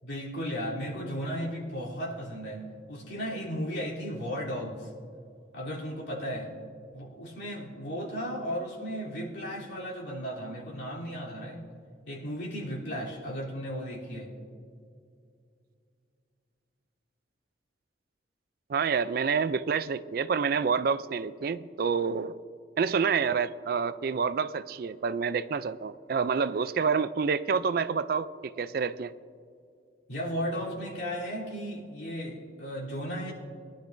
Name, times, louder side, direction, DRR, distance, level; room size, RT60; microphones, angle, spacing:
voice 1, 0.0-2.6 2.9-4.9 5.5-6.5 6.9-11.7 12.1-14.3 30.1-33.3, equal, 75° left, -5 dB, 3.3 m, -35 dB
voice 2, 18.7-22.4 22.8-29.1, right 5 dB, 50° right, 14 dB, 0.3 m, -28 dB
21.5 x 11.5 x 2.6 m, 2.3 s
head